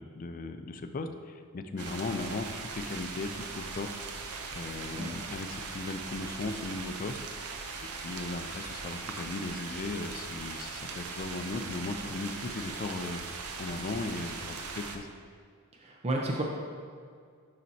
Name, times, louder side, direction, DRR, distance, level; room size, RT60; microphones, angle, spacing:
voice 1, 0.0-4.0 4.5-7.2 7.8-13.2 13.6-15.1, left 3 dB, 40° left, 7 dB, 0.4 m, -37 dB
sound 1, 1.8-15.0, right 4 dB, 80° right, 0.6 m, -40 dB
voice 2, 15.7-16.4, right 2 dB, 30° right, -1 dB, 0.5 m, -32 dB
10.5 x 4.1 x 2.8 m, 2.1 s
head